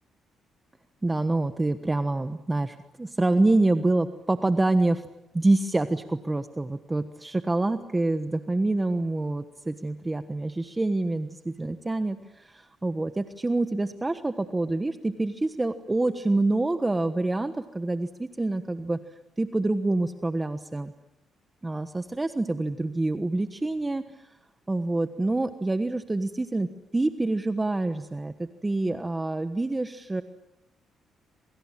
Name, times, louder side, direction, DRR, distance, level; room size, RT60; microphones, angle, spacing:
voice 1, 1.0-5.1 5.3-19.0 19.4-20.9 21.6-24.3 24.7-30.2, right 2 dB, 15° right, 9 dB, 1.2 m, -26 dB
27.5 x 24.0 x 7.5 m, 0.89 s
cardioid pair, 90°, 0 cm